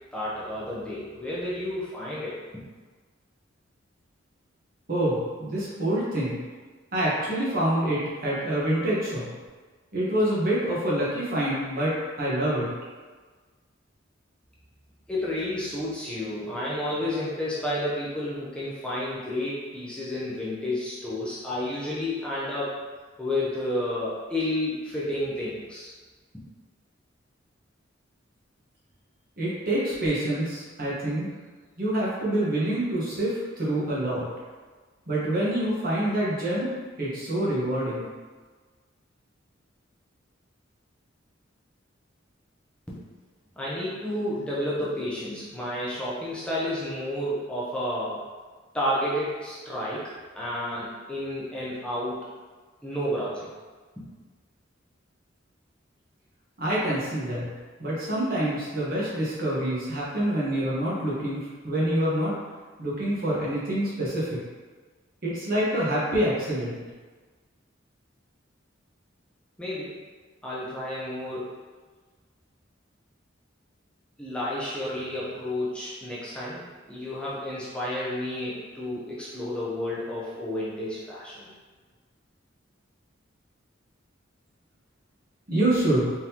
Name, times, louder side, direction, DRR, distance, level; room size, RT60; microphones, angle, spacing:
voice 1, 0.1-2.6 15.1-22.8 23.2-25.9 42.9-43.0 43.6-48.3 48.7-52.3 52.8-53.5 54.0-54.1 69.6-70.0 70.4-71.5 74.2-81.5, left 1 dB, 5° left, -8 dB, 0.6 m, -31 dB
voice 2, 4.9-6.4 6.9-9.3 9.9-12.7 29.4-31.3 31.8-34.2 35.1-36.7 37.0-38.1 56.6-57.5 57.8-62.3 62.8-64.4 65.2-66.8 85.5-86.1, right 1 dB, 50° right, -6 dB, 1.3 m, -26 dB
3.8 x 3.7 x 2.9 m, 1.4 s
head